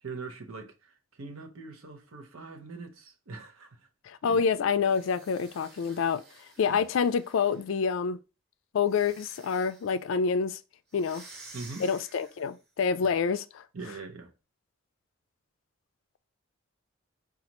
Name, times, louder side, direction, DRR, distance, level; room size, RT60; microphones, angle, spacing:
voice 1, 0.0-3.9 4.2-4.4 6.6-6.8 11.5-11.9 13.0-13.1 13.7-14.3, right 3 dB, 85° right, 0.7 m, -42 dB
voice 2, 4.1-6.2 6.6-8.2 8.7-10.6 10.9-11.2 11.8-13.6, left 6 dB, 70° left, 0.3 m, -27 dB
sound 1, 4.8-7.8 8.8-10.0 10.9-12.6, right 3 dB, 50° right, 1.2 m, -52 dB
5.1 x 2.4 x 2.9 m
head